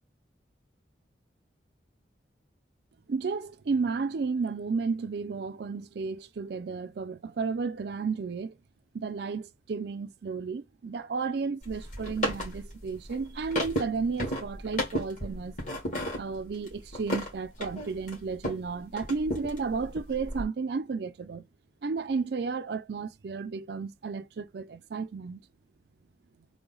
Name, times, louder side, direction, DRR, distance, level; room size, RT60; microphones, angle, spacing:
voice 1, 3.1-8.6 8.9-15.5 16.2-21.5 21.8-25.4, right 4 dB, 65° right, 0.4 m, -33 dB
sound 1, 11.6-18.7 19.0-20.4, equal, 45° left, 1.9 m, -34 dB
3.8 x 2.1 x 3.8 m
head